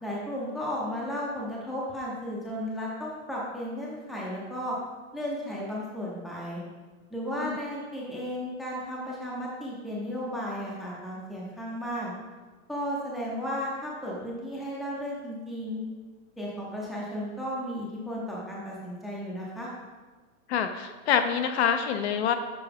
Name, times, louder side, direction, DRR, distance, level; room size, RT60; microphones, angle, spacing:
voice 1, 0.0-4.8 5.1-6.6 7.1-12.1 12.7-15.8 16.4-19.7, equal, ahead, -5 dB, 0.5 m, -34 dB
voice 2, 20.5-22.3, left 8 dB, 50° left, 8 dB, 0.5 m, -26 dB
6.8 x 4.4 x 3.5 m, 1.3 s
supercardioid pair, 150°, 41 cm